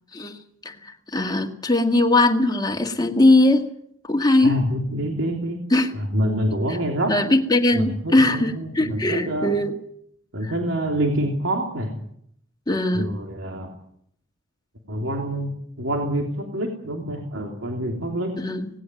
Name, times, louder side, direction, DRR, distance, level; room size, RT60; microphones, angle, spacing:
voice 1, 0.1-3.7 4.0-4.6 5.7-5.9 6.7-6.8 7.1-9.7 10.4-10.5 12.7-13.1 18.4-18.7, left 2 dB, 20° left, 3 dB, 2.0 m, -20 dB
voice 2, 4.4-5.6 5.9-7.2 7.7-9.6 10.3-12.0 12.9-13.7 14.9-15.5 15.8-18.3, equal, 70° right, 2 dB, 3.2 m, -26 dB
18.5 x 17.0 x 9.3 m, 0.69 s
head